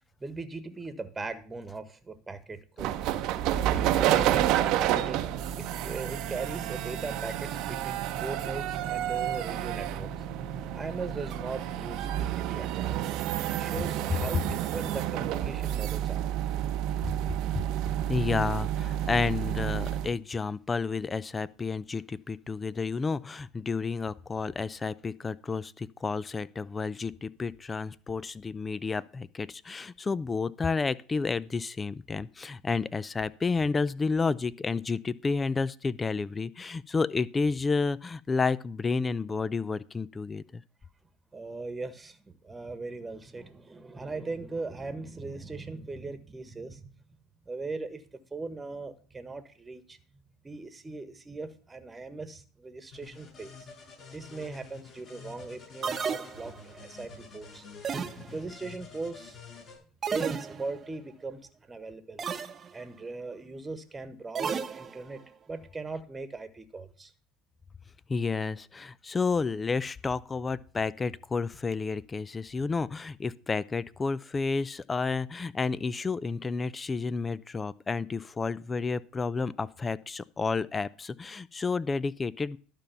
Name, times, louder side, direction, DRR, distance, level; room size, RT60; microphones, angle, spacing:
voice 1, 0.2-3.0 3.6-5.2 5.6-10.2 10.7-13.1 13.5-16.3 41.3-46.8 47.5-48.0 48.3-50.0 50.4-53.6 54.1-57.6 58.3-59.4 60.1-61.4 61.7-62.2 62.7-65.2 65.5-67.1, right 3 dB, 20° right, 1.4 m, -39 dB
sound 1, 2.8-20.1, right 11 dB, 60° right, 0.8 m, -30 dB
voice 2, 18.1-40.6 68.1-82.6, left 4 dB, 25° left, 0.5 m, -31 dB
sound 2, 52.9-59.8, left 4 dB, 40° left, 7.1 m, -49 dB
sound 3, 55.8-56.8 57.8-58.6 60.0-60.9 62.2-62.7 64.3-65.2, right 6 dB, 35° right, 1.0 m, -33 dB
11.5 x 5.4 x 7.0 m
hypercardioid pair, 80°, 0 cm